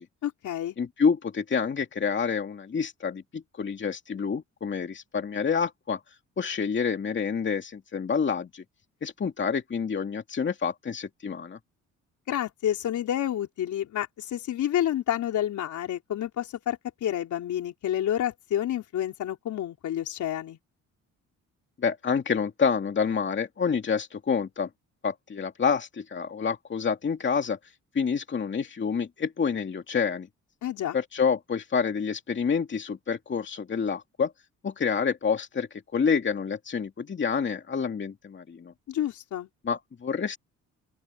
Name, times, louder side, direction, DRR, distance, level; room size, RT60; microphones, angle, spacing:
voice 1, 0.2-0.8 12.3-20.6 30.6-31.0 38.9-39.5, left 11 dB, 75° left, 4.6 m, -29 dB
voice 2, 0.8-6.0 6.4-8.6 9.0-11.6 21.8-24.7 25.0-27.6 27.9-30.3 30.9-34.3 34.6-38.7 39.6-40.4, left 6 dB, 40° left, 2.5 m, -28 dB
open air
cardioid pair, 90°, 30 cm